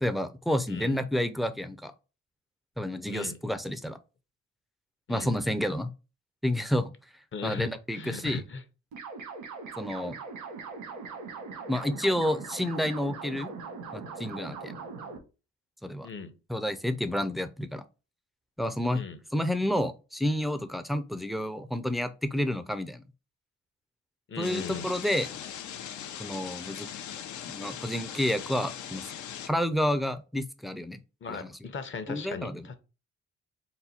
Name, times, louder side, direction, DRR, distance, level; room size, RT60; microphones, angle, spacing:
voice 1, 0.0-1.9 2.8-4.0 5.1-5.9 6.4-6.9 7.4-8.4 9.8-10.1 11.7-13.5 13.9-14.7 15.8-16.1 16.5-17.8 18.6-19.0 19.3-23.0 24.4-25.3 26.2-26.9 27.5-29.0 29.5-31.0 31.3-31.5 32.1-32.7, left 1 dB, ahead, 0.4 m, -30 dB
voice 2, 7.3-8.6 16.0-16.3 18.9-19.2 24.3-24.9 31.2-32.7, left 5 dB, 40° left, 0.8 m, -38 dB
sound 1, 8.9-15.2, right 4 dB, 90° right, 1.4 m, -40 dB
sound 2, 24.4-29.5, left 9 dB, 70° left, 0.6 m, -40 dB
4.1 x 2.2 x 4.1 m
cardioid pair, 90°, 30 cm